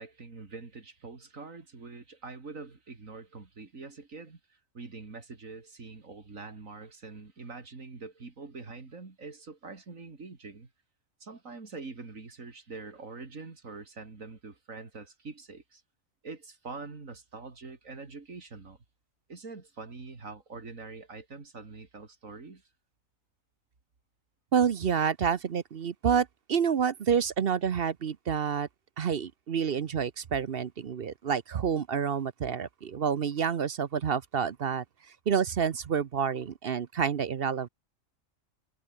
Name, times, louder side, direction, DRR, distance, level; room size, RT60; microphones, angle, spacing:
voice 1, 0.0-10.7 11.2-15.8 16.2-18.8 19.3-22.7, right 4 dB, 75° right, 3.3 m, -44 dB
voice 2, 24.5-28.7 29.0-34.8 35.3-37.7, right 7 dB, 50° right, 0.9 m, -28 dB
omnidirectional pair, 1.4 m